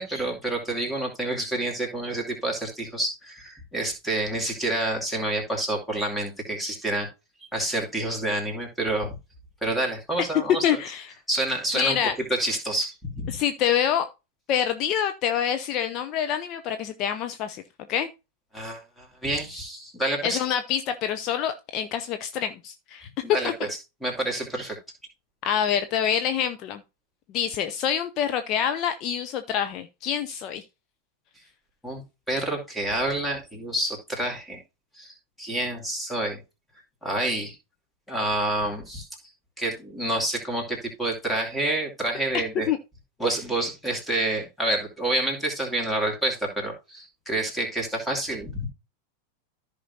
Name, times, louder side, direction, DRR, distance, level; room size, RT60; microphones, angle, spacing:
voice 1, 0.0-7.1 7.5-9.2 9.6-10.6 11.3-12.0 12.3-13.4 18.5-20.4 23.0-24.8 31.8-34.6 34.9-36.4 37.0-37.6 38.1-39.1 39.6-42.7 43.2-48.7, right 1 dB, 5° left, 0 dB, 2.6 m, -28 dB
voice 2, 10.6-11.1 11.7-12.1 13.3-14.1 14.5-17.6 17.9-18.1 20.2-23.1 23.4-23.5 25.4-26.8 27.3-30.6 42.7-42.8, left 9 dB, 35° left, 8 dB, 0.6 m, -26 dB
14.0 x 5.2 x 2.8 m, 0.27 s
figure-of-eight pair, 90°, 0 cm